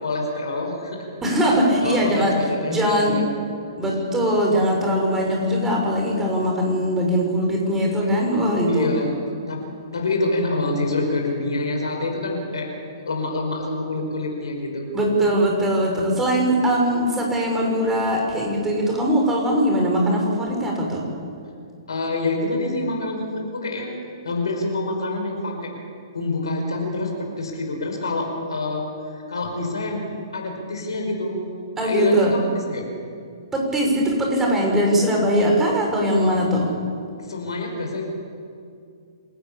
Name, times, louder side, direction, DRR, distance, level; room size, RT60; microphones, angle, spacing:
voice 1, 0.0-1.1 1.8-3.2 8.7-9.1 9.5-12.7 13.0-14.9 21.9-23.9 24.2-25.7 26.1-31.4 31.8-32.9 37.2-38.0, left 2 dB, 75° left, 1 dB, 5.1 m, -26 dB
voice 2, 1.2-3.2 3.8-8.9 14.9-21.1 31.8-32.4 33.5-36.7, equal, 15° right, 0 dB, 6.2 m, -21 dB
27.0 x 14.0 x 8.6 m, 2.4 s
figure-of-eight pair, 120°, 3 cm